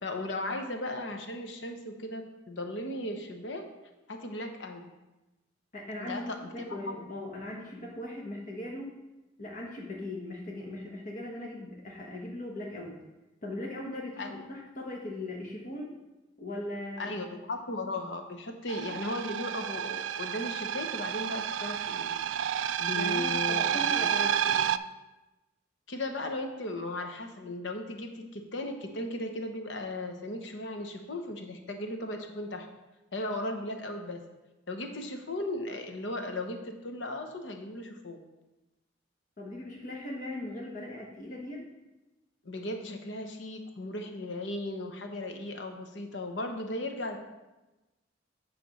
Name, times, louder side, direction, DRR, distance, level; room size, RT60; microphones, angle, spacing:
voice 1, 0.0-3.7 4.1-4.9 6.0-7.0 14.2-14.5 17.0-22.1 22.8-24.1 25.9-32.7 33.1-34.2 34.7-38.2 42.4-47.2, left 1 dB, 70° left, 4 dB, 1.0 m, -36 dB
voice 2, 5.7-8.9 9.4-13.0 13.4-15.9 16.4-17.1 22.9-24.7 39.4-41.6, left 1 dB, 45° left, -2 dB, 1.1 m, -39 dB
sound 1, 18.7-24.8, right 9 dB, 80° right, 0.3 m, -30 dB
9.3 x 3.4 x 6.3 m, 1.1 s
head